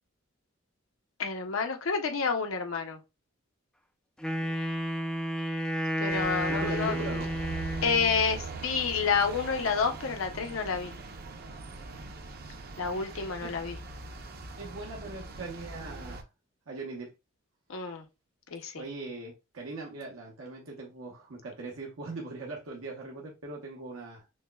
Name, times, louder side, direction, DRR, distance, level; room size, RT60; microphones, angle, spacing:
voice 1, 1.2-3.0 6.0-6.9 7.8-10.9 12.8-13.8 17.7-18.0 18.5-18.8, left 5 dB, 80° left, 0.6 m, -29 dB
Wind instrument woodwind instrument, 4.2-8.2, equal, 5° left, 0.3 m, -31 dB
voice 2, 4.2-4.5 6.5-7.3 13.4-13.6 14.6-16.2 16.7-17.1 18.8-24.2, right 2 dB, 85° right, 0.8 m, -40 dB
sound 1, 6.1-16.2, right 4 dB, 50° right, 0.6 m, -41 dB
6.2 x 2.1 x 2.2 m
head